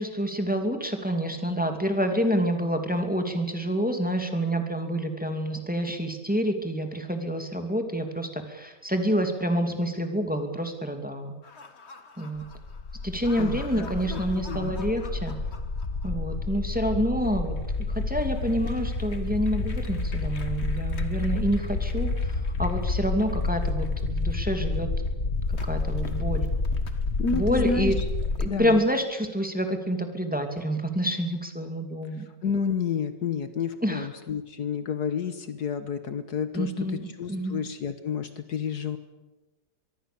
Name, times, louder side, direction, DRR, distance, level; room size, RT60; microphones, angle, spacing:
voice 1, 0.0-11.3 12.2-12.4 13.0-15.3 16.0-17.6 17.9-24.9 25.7-26.5 27.3-28.0 28.4-32.2 33.8-34.1 36.5-37.6, equal, 5° right, 5 dB, 2.7 m, -28 dB
sound 1, 11.5-28.5, left 3 dB, 40° left, 1.8 m, -29 dB
voice 2, 13.4-14.7 27.2-27.9 28.5-28.8 32.4-36.7 37.2-39.0, left 6 dB, 65° left, 10 dB, 1.7 m, -30 dB
24.5 x 23.0 x 7.0 m, 1.1 s
omnidirectional pair, 1.9 m